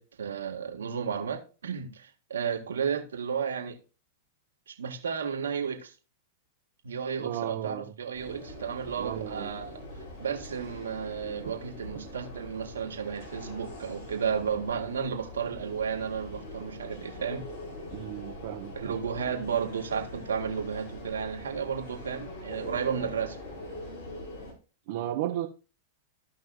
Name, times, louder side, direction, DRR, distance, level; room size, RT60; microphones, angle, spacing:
voice 1, 0.0-3.7 4.7-5.9 6.8-9.8 10.2-17.4 18.7-23.4, right 7 dB, 80° right, 1.7 m, -33 dB
voice 2, 7.2-7.9 9.0-9.5 17.9-18.9 24.9-25.5, right 12 dB, 55° right, 1.1 m, -34 dB
sound 1, 8.1-24.5, left 1 dB, 65° left, 4.8 m, -43 dB
15.0 x 5.5 x 2.5 m
hypercardioid pair, 110°, 0 cm